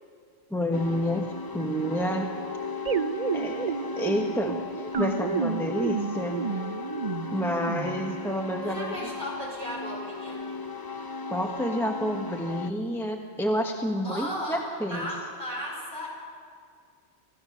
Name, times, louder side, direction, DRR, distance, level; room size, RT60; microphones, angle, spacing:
voice 1, 0.5-2.3 3.3-6.4 7.3-9.0 11.3-15.1, equal, ahead, 2 dB, 1.1 m, -29 dB
sound 1, 0.7-12.7, left 4 dB, 25° left, 0.5 m, -37 dB
sound 2, 2.8-8.3, right 6 dB, 45° right, 0.5 m, -31 dB
voice 2, 8.6-10.4 14.0-16.1, equal, 40° left, -3 dB, 5.7 m, -35 dB
24.5 x 16.0 x 6.5 m, 2.1 s
omnidirectional pair, 1.3 m